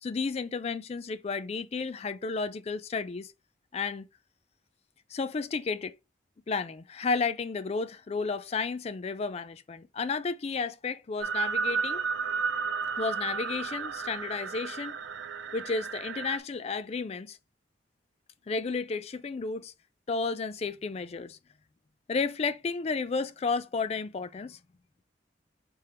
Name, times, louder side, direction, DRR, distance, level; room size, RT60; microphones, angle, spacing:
voice 1, 0.0-3.3 3.7-4.1 5.1-6.0 6.5-12.0 13.0-15.0 15.5-17.4 18.5-19.7 20.1-21.4 22.1-24.6, left 4 dB, 35° left, 0.3 m, -32 dB
sound 1, 11.2-16.4, right 5 dB, 80° right, 0.4 m, -32 dB
3.6 x 3.4 x 4.3 m
head